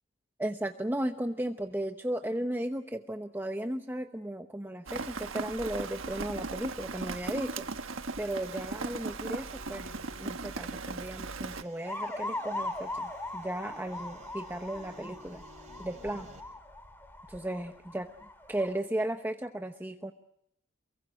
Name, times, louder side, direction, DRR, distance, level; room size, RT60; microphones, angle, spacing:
voice 1, 0.4-7.7 8.2-15.4 15.8-16.3 17.3-18.1 18.5-20.1, right 1 dB, 10° right, 5 dB, 0.9 m, -35 dB
Rain, 4.9-11.6, right 3 dB, 90° right, 1.3 m, -38 dB
sound 1, 8.4-16.4, right 1 dB, 35° right, 4.3 m, -55 dB
sound 2, 11.8-18.8, left 2 dB, 10° left, 2.4 m, -40 dB
28.5 x 23.0 x 6.3 m, 0.76 s
head